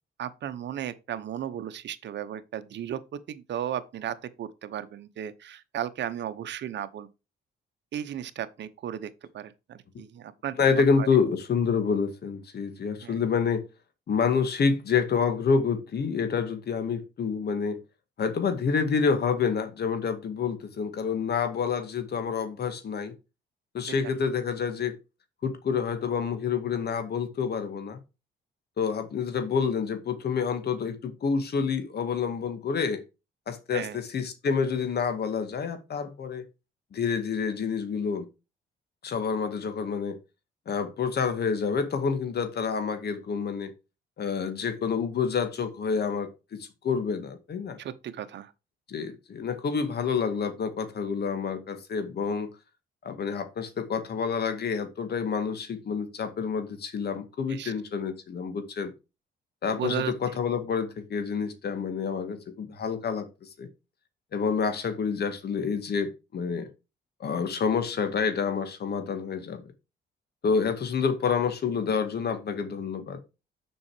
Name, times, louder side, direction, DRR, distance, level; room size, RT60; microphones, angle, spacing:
voice 1, 0.2-7.1 7.9-11.1 13.0-13.2 24.0-24.1 33.7-34.0 47.8-48.5 57.5-57.7 59.8-60.1, right 10 dB, 65° right, 1.0 m, -35 dB
voice 2, 10.6-13.6 14.1-17.8 18.2-23.1 23.7-24.9 25.4-28.0 28.8-33.0 33.5-36.4 36.9-38.3 39.0-40.2 40.7-43.7 44.2-47.8 48.9-52.5 53.0-58.9 59.6-63.7 64.3-66.7 67.2-69.6 70.4-73.2, left 6 dB, 55° left, 2.0 m, -28 dB
7.0 x 5.6 x 5.0 m
cardioid pair, 90°, 20 cm